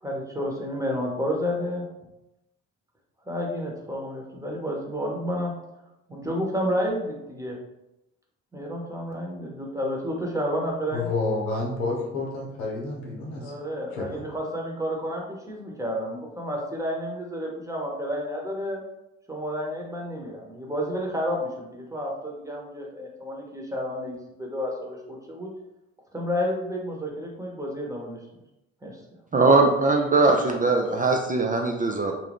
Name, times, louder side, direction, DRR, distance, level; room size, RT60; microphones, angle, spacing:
voice 1, 0.0-1.8 3.3-5.5 6.1-7.5 8.5-11.1 13.4-18.8 19.3-25.0 25.3-25.5 26.1-28.2 28.8-29.0, equal, 10° right, -1 dB, 1.0 m, -30 dB
voice 2, 10.9-13.5 13.9-14.2, left 3 dB, 85° left, -1 dB, 0.8 m, -29 dB
voice 3, 29.3-32.1, right 3 dB, 25° right, 2 dB, 0.4 m, -20 dB
2.6 x 2.2 x 3.5 m, 0.90 s
hypercardioid pair, 50°, 34 cm